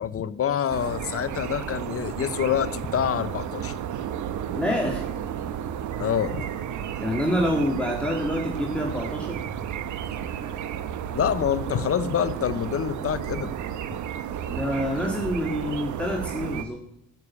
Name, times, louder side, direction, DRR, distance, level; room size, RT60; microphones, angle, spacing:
voice 1, 0.0-3.7 6.0-6.5 11.1-13.5, left 9 dB, 50° left, 15 dB, 0.8 m, -26 dB
sound 1, 0.7-16.6, right 9 dB, 75° right, 1.1 m, -32 dB
voice 2, 4.5-5.0 7.0-9.4 14.5-16.8, equal, 5° left, 0 dB, 2.1 m, -27 dB
14.5 x 6.9 x 8.5 m, 0.79 s
cardioid pair, 90°, 30 cm